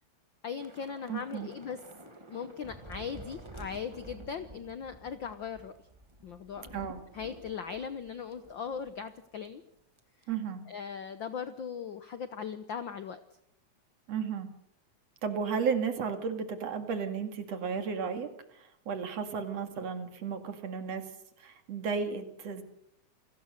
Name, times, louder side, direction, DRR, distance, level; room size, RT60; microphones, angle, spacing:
voice 1, 0.4-1.8 2.0-5.7 6.2-6.9 7.1-9.6 10.7-13.2, left 6 dB, 65° left, 11 dB, 1.2 m, -39 dB
Thunder / Rain, 0.6-9.2 9.4-9.6 10.0-10.2, right 1 dB, 10° right, 1.6 m, -50 dB
voice 2, 1.1-1.5 6.7-7.0 10.3-10.6 14.1-14.5 15.2-21.0 21.4-22.6, right 6 dB, 60° right, 7 dB, 3.1 m, -34 dB
29.0 x 19.0 x 6.5 m, 0.77 s
omnidirectional pair, 3.4 m